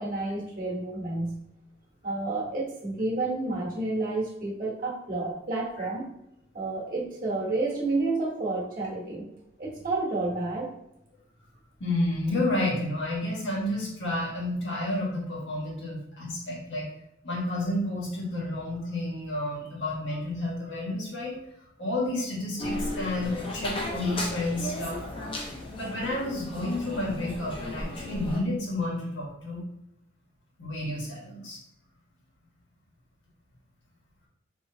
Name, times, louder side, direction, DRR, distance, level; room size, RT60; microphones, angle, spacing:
voice 1, 0.0-1.3 2.0-6.1 6.5-9.2 9.6-10.7, right 2 dB, 45° right, -3 dB, 1.2 m, -30 dB
voice 2, 11.8-16.9 17.2-21.4 21.8-25.0 25.8-29.6 30.6-31.6, left 1 dB, 80° left, -4 dB, 1.5 m, -30 dB
sound 1, 22.6-28.4, left 1 dB, 30° left, 0.7 m, -35 dB
4.3 x 3.2 x 2.8 m, 0.83 s
head